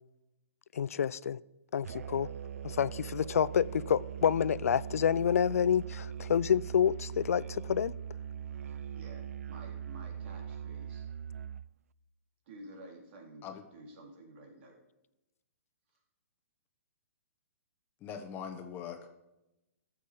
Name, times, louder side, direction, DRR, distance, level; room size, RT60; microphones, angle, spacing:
voice 1, 0.7-1.4 1.7-2.3 2.6-7.9, left 8 dB, 75° left, 19 dB, 0.4 m, -28 dB
Musical instrument, 1.8-11.7, right 9 dB, 75° right, 0.3 m, -41 dB
voice 2, 8.9-11.0 12.5-13.4 13.7-14.8, right 1 dB, 50° right, 1 dB, 3.3 m, -51 dB
voice 3, 18.0-19.1, left 7 dB, 25° left, 6 dB, 1.2 m, -41 dB
14.0 x 6.6 x 5.0 m, 0.94 s
hypercardioid pair, 130°, 8 cm